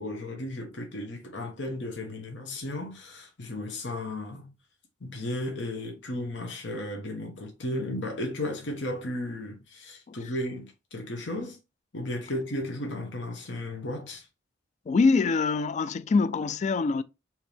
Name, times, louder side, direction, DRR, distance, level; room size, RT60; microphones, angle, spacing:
voice 1, 0.0-4.5 5.0-11.6 11.9-14.3, left 1 dB, 75° left, 1.1 m, -34 dB
voice 2, 14.9-17.0, left 4 dB, 40° left, 0.3 m, -24 dB
4.4 x 2.9 x 3.5 m
head